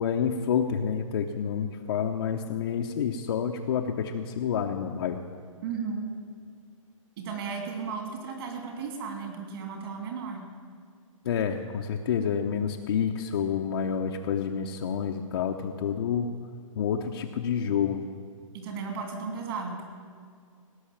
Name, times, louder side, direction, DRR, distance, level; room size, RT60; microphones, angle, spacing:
voice 1, 0.0-5.2 11.2-16.3 16.7-18.0, left 7 dB, 45° left, 1 dB, 0.8 m, -28 dB
voice 2, 5.6-6.0 7.2-10.4 18.5-19.8, right 5 dB, 45° right, 2 dB, 3.0 m, -35 dB
17.5 x 6.3 x 8.9 m, 2.2 s
hypercardioid pair, 155°, 17 cm